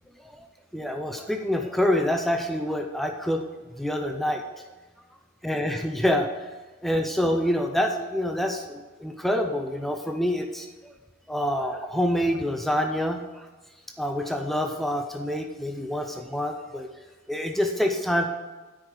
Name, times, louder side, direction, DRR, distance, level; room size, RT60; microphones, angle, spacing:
voice 1, 0.7-3.4 3.8-4.4 5.4-6.5 6.8-10.9 11.3-13.5 14.0-16.9 17.3-18.3, equal, ahead, 4 dB, 0.5 m, -26 dB
9.5 x 5.0 x 6.3 m, 1.3 s
head